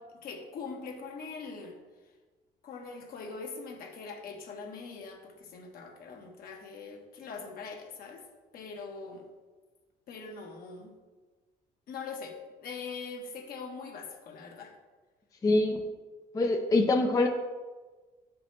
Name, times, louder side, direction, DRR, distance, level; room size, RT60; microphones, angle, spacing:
voice 1, 0.0-1.8 2.6-8.3 8.5-9.2 10.1-10.9 11.9-14.7, left 4 dB, 60° left, 2 dB, 1.2 m, -42 dB
voice 2, 15.4-15.8 16.3-17.3, left 2 dB, 20° left, 4 dB, 0.5 m, -24 dB
8.3 x 5.0 x 3.1 m, 1.3 s
cardioid pair, 110°, 17 cm